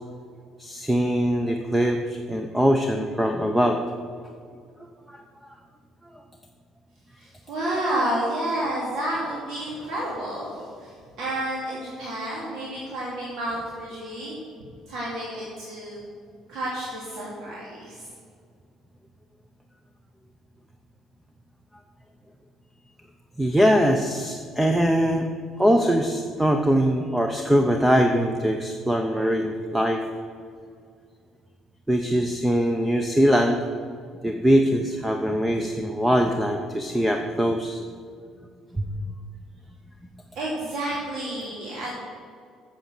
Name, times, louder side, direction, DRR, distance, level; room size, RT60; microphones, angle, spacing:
voice 1, 0.6-3.8 5.1-5.2 23.4-25.3 25.6-30.0 31.9-33.6 34.2-37.9 38.8-38.9, equal, 5° right, 5 dB, 0.6 m, -22 dB
voice 2, 7.2-14.4 14.9-16.1 16.5-18.1 40.3-42.0, right 1 dB, 65° right, -6 dB, 2.6 m, -30 dB
8.0 x 7.2 x 7.6 m, 2.2 s
cardioid pair, 115°, 0 cm